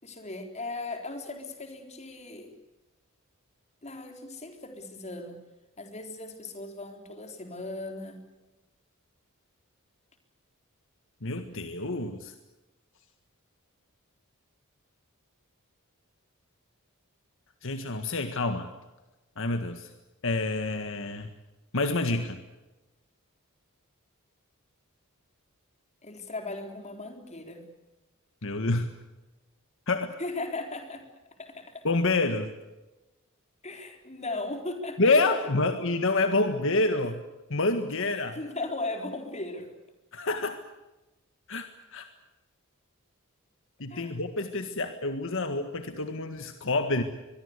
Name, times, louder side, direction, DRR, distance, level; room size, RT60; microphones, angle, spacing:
voice 1, 0.0-2.5 3.8-5.4 5.8-8.2 26.0-27.7 30.2-31.1 31.4-31.8 33.6-35.3 38.0-39.7 43.9-44.2, left 2 dB, 30° left, 5 dB, 4.1 m, -37 dB
voice 2, 11.2-12.3 17.6-18.7 19.4-19.9 20.2-21.3 21.7-22.4 28.4-28.9 29.9-30.1 31.8-32.5 35.0-37.2 37.5-38.4 40.1-40.6 41.5-42.1 43.8-47.0, left 2 dB, 65° left, 7 dB, 1.7 m, -27 dB
23.5 x 23.0 x 8.3 m, 1.1 s
head